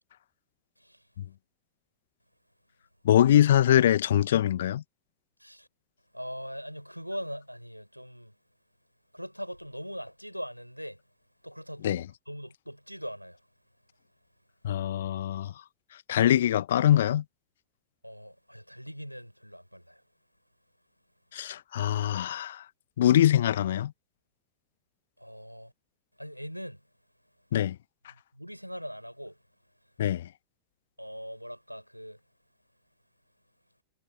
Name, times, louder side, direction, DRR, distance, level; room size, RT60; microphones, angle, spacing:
voice 1, 3.0-4.8 11.8-12.0 14.6-15.5 16.1-17.2 21.3-22.6 23.0-23.9 27.5-27.7 30.0-30.3, left 11 dB, 60° left, 1.5 m, -23 dB
voice 2, 6.1-8.4 9.1-11.0 11.4-13.4 18.0-20.0 25.2-25.7 26.2-26.8 28.3-29.4 31.0-32.2, equal, 90° right, 5.4 m, -41 dB
figure-of-eight pair, 90°, 0 cm